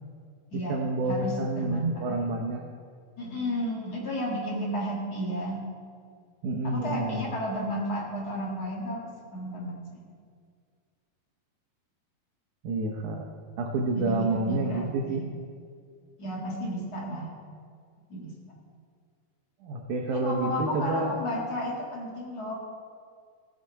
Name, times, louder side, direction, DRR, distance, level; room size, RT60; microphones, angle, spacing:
voice 1, 0.5-2.6 6.4-7.2 12.6-13.3 13.6-15.2 19.6-21.2, right 2 dB, 75° right, 0 dB, 1.9 m, -29 dB
voice 2, 1.0-2.2 3.2-5.6 6.6-9.8 13.9-15.3 16.2-17.3 18.1-18.3 20.1-22.6, equal, 40° left, -3 dB, 1.5 m, -32 dB
16.5 x 6.7 x 4.7 m, 2.1 s
omnidirectional pair, 4.5 m